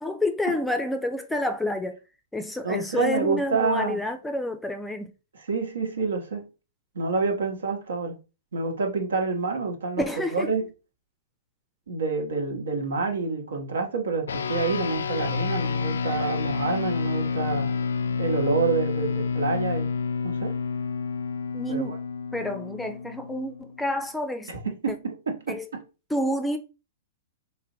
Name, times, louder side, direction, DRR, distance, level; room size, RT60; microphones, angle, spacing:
voice 1, 0.0-2.0 2.3-5.1 10.0-10.5 21.5-22.0 22.3-24.5 25.5-25.6 26.1-26.6, left 1 dB, 5° left, 0.5 m, -28 dB
voice 2, 2.6-4.0 5.3-6.5 6.9-8.2 8.5-10.0 10.3-10.7 11.9-17.7 18.2-19.9 20.2-20.5 21.7-22.0 24.5-25.8, right 4 dB, 85° right, 1.1 m, -28 dB
sound 1, 14.3-23.9, left 5 dB, 85° left, 0.3 m, -29 dB
3.2 x 2.2 x 3.8 m
hypercardioid pair, 125°, 0 cm